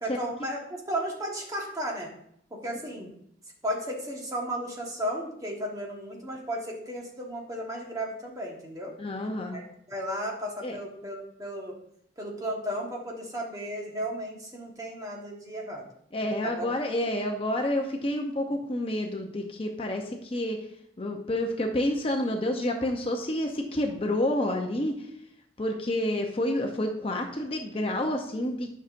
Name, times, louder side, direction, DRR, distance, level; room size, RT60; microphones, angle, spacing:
voice 1, 0.0-2.1 2.5-3.1 3.6-8.9 9.5-9.6 9.9-11.7 12.2-15.8 16.4-16.7, equal, 20° right, -1 dB, 1.3 m, -34 dB
voice 2, 9.0-9.6 10.6-10.8 16.1-20.6 21.0-25.1 25.6-28.8, left 1 dB, 30° left, 3 dB, 0.6 m, -29 dB
10.0 x 5.8 x 2.5 m, 0.72 s
head